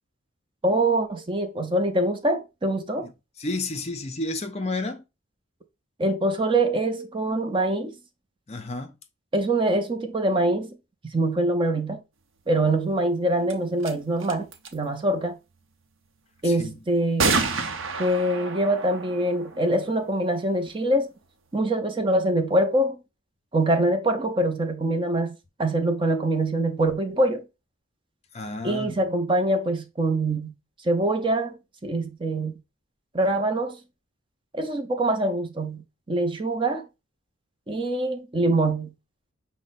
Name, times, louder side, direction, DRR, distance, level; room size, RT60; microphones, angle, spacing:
voice 1, 0.6-3.1 6.0-8.0 9.3-10.8 11.1-12.0 12.5-15.4 16.4-17.4 18.0-21.1 21.5-23.0 23.5-25.3 25.6-27.5 28.6-30.5 30.8-32.5 33.1-33.8 34.5-36.9 37.7-38.9, right 1 dB, 25° right, 0.6 m, -24 dB
voice 2, 3.4-5.0 8.5-8.9 16.4-16.7 28.3-29.0, left 2 dB, 30° left, 0.5 m, -31 dB
sound 1, 13.5-13.6 13.8-13.9 14.2-14.7 17.2-20.6, right 4 dB, 70° right, 0.7 m, -29 dB
6.2 x 2.1 x 4.0 m
head